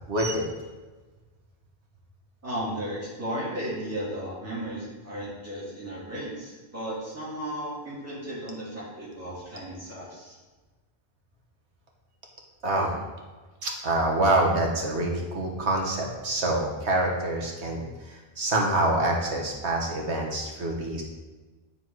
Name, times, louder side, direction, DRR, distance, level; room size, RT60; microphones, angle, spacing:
voice 1, 0.1-0.4 12.6-13.0 13.6-21.0, right 1 dB, 90° right, 0 dB, 1.6 m, -26 dB
voice 2, 2.4-10.3, right 1 dB, 15° right, -9 dB, 2.6 m, -35 dB
9.6 x 3.9 x 4.6 m, 1.3 s
omnidirectional pair, 1.1 m